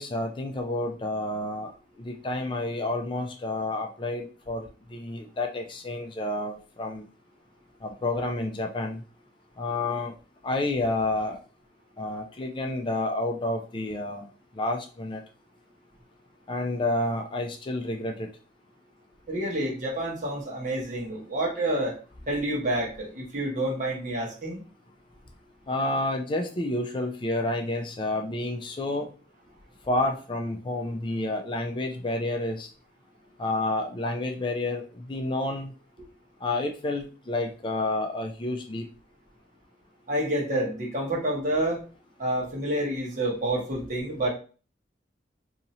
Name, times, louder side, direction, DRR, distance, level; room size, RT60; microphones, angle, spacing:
voice 1, 0.0-1.7 2.0-7.1 7.8-9.0 9.6-10.1 10.4-11.4 12.0-14.3 14.5-15.2 16.5-18.3 25.7-29.1 29.9-32.7 33.4-35.7 36.4-38.9, left 2 dB, 25° left, 3 dB, 0.4 m, -29 dB
voice 2, 19.3-22.0 22.3-24.6 40.1-41.8 42.2-44.3, right 1 dB, 45° right, -2 dB, 1.2 m, -28 dB
2.8 x 2.6 x 4.1 m, 0.37 s
head